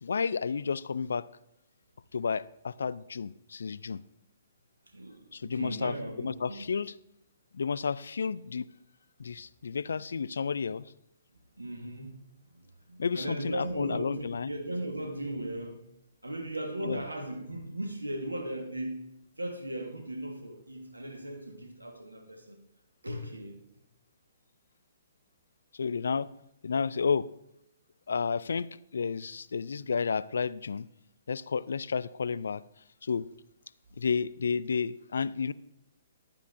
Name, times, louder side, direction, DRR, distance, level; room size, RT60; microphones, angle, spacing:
voice 1, 0.0-1.3 2.1-4.0 5.3-5.9 6.2-6.9 7.5-8.7 9.2-10.8 13.0-14.5 16.9-17.0 25.7-26.3 26.6-27.3 28.1-30.9 31.3-32.6 33.0-33.3 34.0-35.5, left 5 dB, 70° left, 0.3 m, -31 dB
voice 2, 4.9-6.6 11.6-15.8 16.2-22.6 23.0-23.6, right 1 dB, 90° right, 1.4 m, -37 dB
14.5 x 10.5 x 2.6 m
figure-of-eight pair, 125°, 0 cm